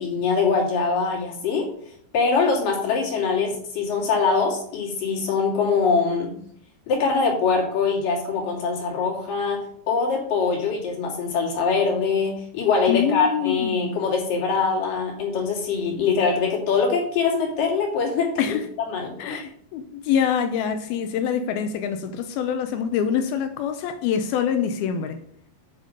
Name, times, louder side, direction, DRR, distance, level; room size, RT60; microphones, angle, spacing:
voice 1, 0.0-1.7 2.1-6.3 6.9-9.6 9.9-18.6 18.9-19.4, left 5 dB, 55° left, 4.2 m, -23 dB
voice 2, 12.9-13.9 18.4-18.7 19.2-25.2, left 8 dB, 80° left, 2.3 m, -25 dB
7.7 x 7.3 x 6.6 m
omnidirectional pair, 4.8 m